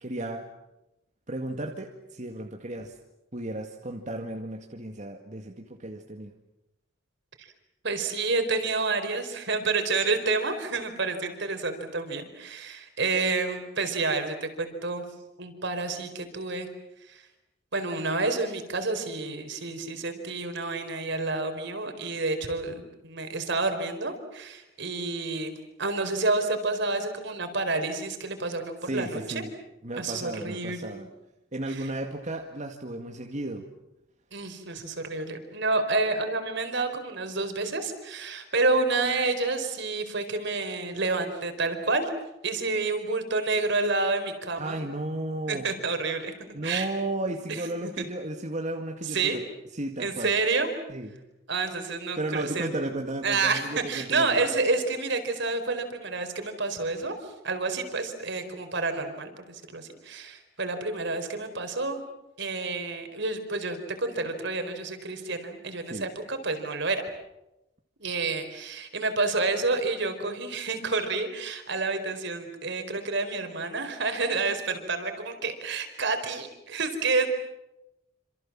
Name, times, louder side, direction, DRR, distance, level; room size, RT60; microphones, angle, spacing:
voice 1, 0.0-0.5 1.3-3.0 3.3-6.3 28.8-29.6 29.8-31.1 31.5-33.6 44.6-45.7 46.5-49.5 49.8-50.3 50.9-51.1 52.2-54.4 65.9-66.1, right 1 dB, 40° right, 3 dB, 2.1 m, -34 dB
voice 2, 7.8-15.1 15.4-16.7 17.0-17.3 17.7-25.5 25.8-29.4 29.9-31.0 31.7-31.9 34.3-42.1 42.4-44.8 45.5-46.3 46.6-46.9 47.5-48.0 49.0-49.4 50.0-50.7 51.5-52.7 53.2-62.0 62.4-67.0 68.0-77.3, right 3 dB, 60° right, 7 dB, 4.5 m, -29 dB
28.0 x 27.0 x 7.5 m, 0.92 s
head